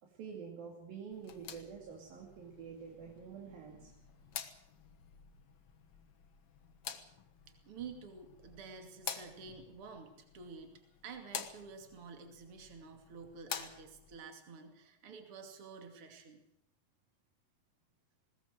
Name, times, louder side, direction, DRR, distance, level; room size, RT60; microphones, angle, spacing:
voice 1, 0.0-3.9, right 6 dB, 80° right, -1 dB, 4.4 m, -48 dB
sound 1, 1.1-14.2, left 8 dB, 55° left, 1.8 m, -49 dB
voice 2, 7.6-16.4, right 5 dB, 40° right, 5 dB, 3.2 m, -50 dB
20.5 x 18.5 x 7.6 m, 0.78 s
omnidirectional pair, 4.1 m